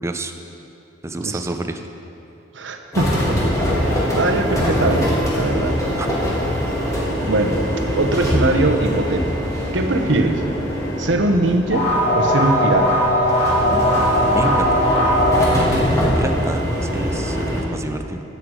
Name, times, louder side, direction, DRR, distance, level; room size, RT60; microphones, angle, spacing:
voice 1, 0.0-0.3 1.0-1.8 6.0-6.1 14.3-14.9 15.5-18.2, right 2 dB, 15° right, 6 dB, 0.5 m, -28 dB
voice 2, 2.5-3.4 3.8-5.8 7.3-7.6 8.0-9.3 9.7-10.4 11.0-11.9 12.2-13.0, right 2 dB, 75° right, 5 dB, 0.9 m, -21 dB
sound 1, 2.9-17.6, equal, 20° left, 2.1 m, -23 dB
sound 2, 11.7-16.4, equal, 60° left, 2.2 m, -19 dB
12.5 x 8.0 x 4.8 m, 2.8 s
head